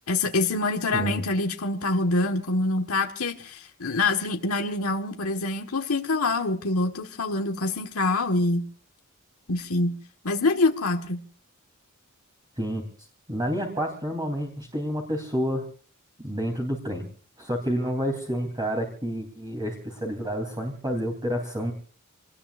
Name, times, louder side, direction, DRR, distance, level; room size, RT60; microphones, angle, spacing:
voice 1, 0.1-8.6 9.5-10.0 10.2-11.2, left 2 dB, 75° left, 3 dB, 1.5 m, -25 dB
voice 2, 13.3-15.7 16.2-17.0 17.4-21.7, equal, 20° right, 2 dB, 3.3 m, -29 dB
28.5 x 20.0 x 2.5 m, 0.41 s
head